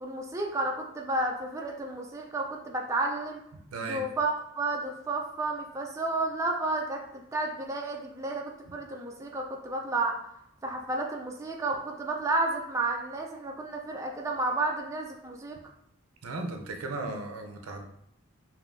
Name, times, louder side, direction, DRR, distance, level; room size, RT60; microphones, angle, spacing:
voice 1, 0.0-3.4 3.8-10.2 10.6-15.6, right 2 dB, 15° right, 0 dB, 0.4 m, -31 dB
voice 2, 3.7-4.0 16.2-17.9, right 2 dB, 85° right, 4 dB, 0.6 m, -36 dB
5.2 x 2.6 x 2.6 m, 0.74 s
head